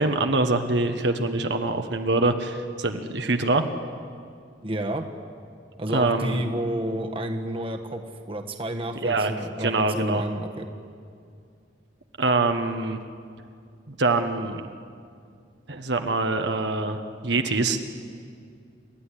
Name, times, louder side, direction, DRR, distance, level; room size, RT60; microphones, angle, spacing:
voice 1, 0.0-3.7 5.9-6.4 9.0-9.3 9.6-10.2 12.2-13.0 13.9-14.6 15.7-17.8, right 2 dB, 70° right, 6 dB, 1.3 m, -24 dB
voice 2, 4.6-5.1 5.8-10.7, right 1 dB, 30° right, 4 dB, 1.3 m, -30 dB
29.0 x 13.5 x 9.9 m, 2.3 s
head